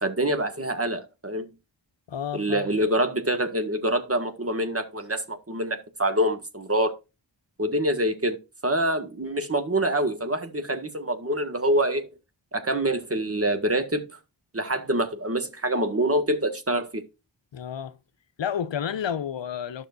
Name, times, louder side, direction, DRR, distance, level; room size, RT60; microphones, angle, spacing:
voice 1, 0.0-1.5 2.3-6.9 7.6-8.4 8.6-12.1 12.5-14.0 14.5-17.0, right 1 dB, 30° right, 1.7 m, -25 dB
voice 2, 2.1-2.7 17.5-18.0 18.4-19.9, left 8 dB, 70° left, 0.7 m, -30 dB
12.0 x 6.3 x 2.5 m
cardioid pair, 55°, 47 cm